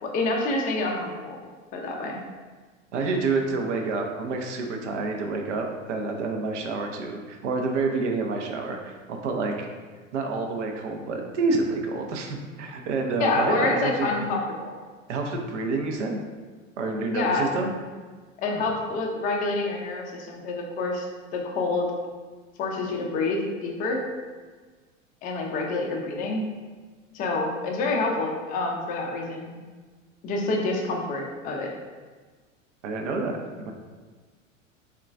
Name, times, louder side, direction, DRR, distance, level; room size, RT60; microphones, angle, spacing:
voice 1, 0.0-1.4 1.7-2.2 13.2-14.8 17.1-17.5 18.4-21.1 21.3-21.9 22.6-24.0 25.2-26.4 27.1-29.6 30.2-31.7, left 2 dB, 20° left, 0 dB, 0.4 m, -27 dB
voice 2, 2.9-9.7 10.1-14.1 15.1-16.2 16.8-17.7 18.5-18.6 32.8-33.7, right 3 dB, 60° right, 3 dB, 0.6 m, -28 dB
3.7 x 2.3 x 2.4 m, 1.4 s
figure-of-eight pair, 85°, 40 cm